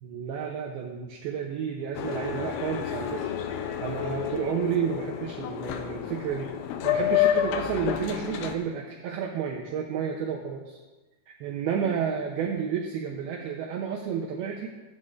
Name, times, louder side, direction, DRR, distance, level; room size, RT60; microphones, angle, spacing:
voice 1, 0.0-3.3 3.8-6.5 6.8-10.8 11.3-14.7, right 7 dB, 85° right, 0 dB, 2.2 m, -31 dB
Boat Water vehicle, 1.9-8.6, left 10 dB, 90° left, 3.1 m, -29 dB
14.0 x 9.2 x 2.5 m, 1.2 s
omnidirectional pair, 5.3 m